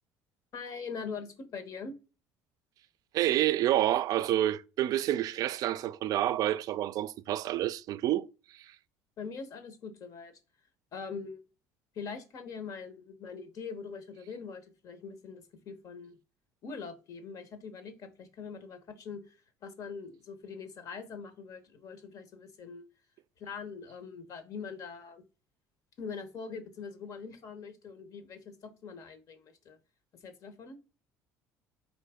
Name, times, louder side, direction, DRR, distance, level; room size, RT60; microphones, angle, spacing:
voice 1, 0.5-1.9 9.2-10.4 10.9-11.4 11.9-16.2 16.6-22.8 23.4-25.2 26.0-29.8 30.2-30.8, left 5 dB, 55° left, 0.9 m, -43 dB
voice 2, 3.1-8.8, right 13 dB, 60° right, 0.3 m, -29 dB
3.9 x 2.8 x 3.5 m
supercardioid pair, 80°, 7 cm